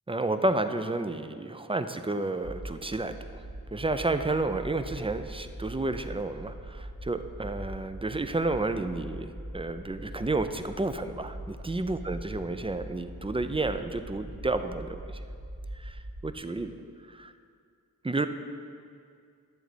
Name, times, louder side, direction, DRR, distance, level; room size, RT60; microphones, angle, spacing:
voice 1, 0.1-3.4 3.7-15.2 15.7-16.7 17.1-17.3 18.0-18.3, right 2 dB, 15° right, 9 dB, 0.4 m, -31 dB
sound 1, 2.4-16.3, right 1 dB, 65° right, 1.7 m, -42 dB
12.0 x 4.0 x 7.9 m, 2.3 s
wide cardioid pair, 95°, 34 cm